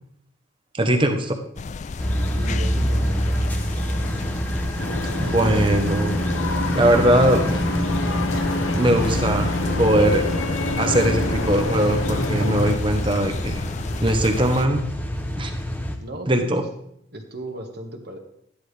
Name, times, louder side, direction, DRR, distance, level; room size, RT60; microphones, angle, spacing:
voice 1, 0.8-1.3 5.2-6.2 6.7-7.5 8.7-10.3 10.8-13.6 14.0-14.9 15.4-15.5 16.3-16.6, right 1 dB, 25° right, 5 dB, 1.0 m, -20 dB
sound 1, 1.6-14.7, left 4 dB, 35° left, 0.3 m, -34 dB
sound 2, 2.0-16.0, equal, 10° left, 0.9 m, -26 dB
voice 2, 2.3-3.5 16.0-16.5 17.1-18.2, right 1 dB, 50° right, 4 dB, 1.5 m, -36 dB
sound 3, 4.8-12.8, left 2 dB, 75° left, 1.2 m, -28 dB
12.5 x 10.0 x 3.4 m, 0.74 s
head